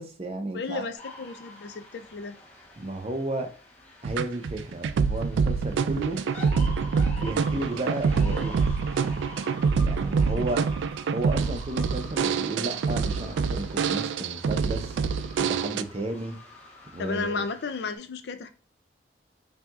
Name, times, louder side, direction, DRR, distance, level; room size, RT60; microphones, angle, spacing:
voice 1, 0.0-0.9 2.8-3.5 4.0-6.2 7.2-8.7 9.8-10.6 11.1-15.0 15.4-16.4 16.9-17.4, right 2 dB, 35° right, 0.6 m, -33 dB
voice 2, 0.5-2.4 10.3-10.5 17.0-18.5, left 4 dB, 65° left, 0.4 m, -34 dB
sound 1, 0.9-18.0, left 1 dB, 35° left, 1.0 m, -46 dB
sound 2, 4.0-15.8, right 5 dB, 90° right, 0.3 m, -26 dB
5.6 x 2.7 x 2.3 m
head